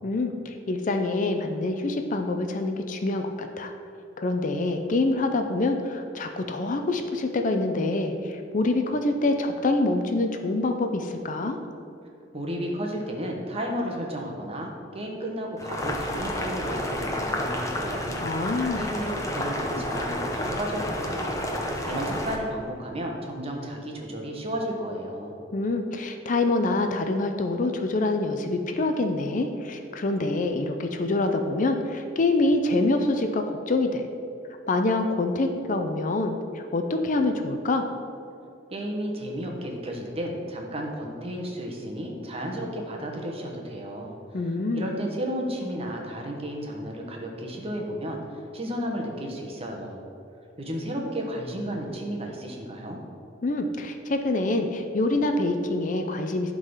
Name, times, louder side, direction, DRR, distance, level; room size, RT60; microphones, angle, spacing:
voice 1, 0.0-3.7 4.2-11.6 18.2-18.8 25.5-34.0 34.7-37.9 44.3-44.9 53.4-56.5, left 2 dB, 40° left, 6 dB, 0.5 m, -26 dB
voice 2, 12.3-21.4 21.9-25.3 38.7-44.1 44.7-50.0 50.6-53.0, equal, 30° right, 0 dB, 1.2 m, -33 dB
Boiling, 15.6-22.4, left 1 dB, 15° left, 0.9 m, -30 dB
11.0 x 3.9 x 5.6 m, 2.6 s
head